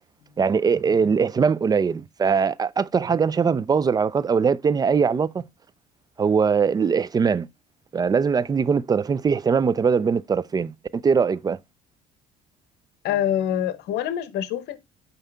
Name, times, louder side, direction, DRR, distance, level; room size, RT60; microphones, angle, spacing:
voice 1, 0.4-5.4 6.2-7.5 7.9-11.6, right 6 dB, 25° right, 0.3 m, -21 dB
voice 2, 13.0-14.8, left 10 dB, 80° left, 0.9 m, -25 dB
5.6 x 5.4 x 3.4 m
cardioid pair, 110°, 17 cm